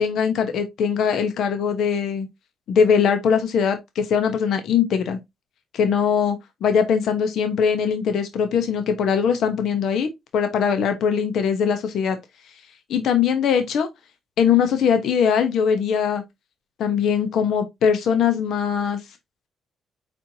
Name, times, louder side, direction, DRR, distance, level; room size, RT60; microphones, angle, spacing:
voice 1, 0.0-2.3 2.7-5.2 5.7-12.2 12.9-13.9 14.4-16.2 16.8-19.0, left 7 dB, 75° left, 0.9 m, -21 dB
4.5 x 4.3 x 2.8 m
cardioid pair, 90°, 0 cm